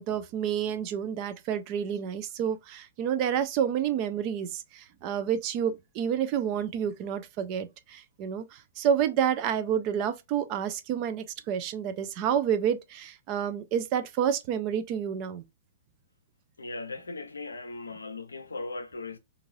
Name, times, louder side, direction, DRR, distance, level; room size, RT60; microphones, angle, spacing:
voice 1, 0.0-15.4, right 8 dB, 40° right, 0.5 m, -29 dB
voice 2, 16.6-19.2, left 3 dB, 80° left, 0.5 m, -38 dB
2.6 x 2.5 x 3.0 m
figure-of-eight pair, 110°, 0 cm